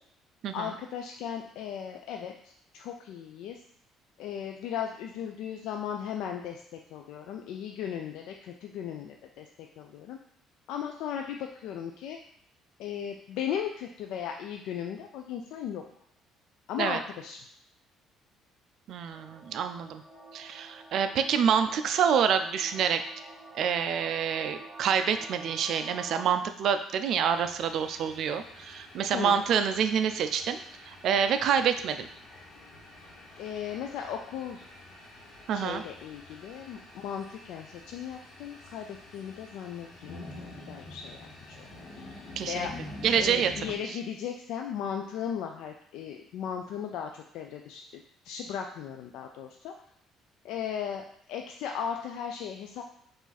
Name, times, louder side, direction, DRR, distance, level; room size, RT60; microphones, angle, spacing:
voice 1, 0.5-3.6 4.2-10.2 10.7-12.2 12.8-15.8 16.7-17.4 29.1-29.4 33.4-34.6 35.5-40.3 40.7-41.6 42.5-42.7 43.2-49.7 50.4-52.8, left 8 dB, 75° left, 3 dB, 0.3 m, -37 dB
voice 2, 18.9-20.0 20.3-23.0 23.5-30.6 30.9-32.1 35.5-35.8 42.4-42.7 43.0-43.5 43.9-44.0, right 7 dB, 55° right, 9 dB, 0.4 m, -27 dB
sound 1, 19.1-26.3, right 2 dB, 15° right, 1.4 m, -48 dB
sound 2, 27.3-43.8, left 1 dB, 60° left, 1.2 m, -47 dB
4.8 x 2.5 x 4.0 m, 0.74 s
cardioid pair, 145°, 0 cm